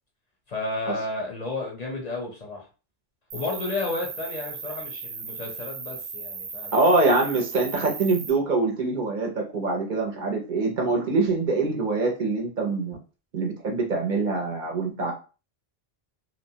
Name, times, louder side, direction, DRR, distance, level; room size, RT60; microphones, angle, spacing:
voice 1, 0.5-2.7 3.3-6.8, left 2 dB, 50° left, 0 dB, 0.6 m, -32 dB
Cricket, 3.3-8.3, right 5 dB, 85° right, 0.9 m, -37 dB
voice 2, 6.7-13.0 13.3-15.1, right 3 dB, 55° right, 0 dB, 0.7 m, -24 dB
2.8 x 2.0 x 2.7 m, 0.34 s
omnidirectional pair, 1.0 m